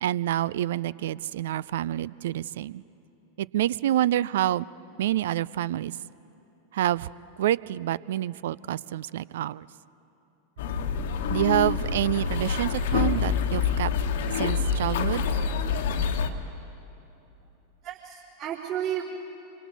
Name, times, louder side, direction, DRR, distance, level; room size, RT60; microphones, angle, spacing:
voice 1, 0.0-2.8 3.4-4.7 5.0-6.0 6.7-7.1 7.4-9.7 11.3-13.9 14.4-15.2, right 13 dB, 65° right, 21 dB, 0.4 m, -27 dB
sound 1, 10.6-16.3, left 6 dB, 65° left, 1.3 m, -26 dB
voice 2, 17.8-19.0, right 11 dB, 45° right, -9 dB, 4.1 m, -33 dB
27.5 x 25.0 x 4.1 m, 2.9 s
figure-of-eight pair, 90°, 0 cm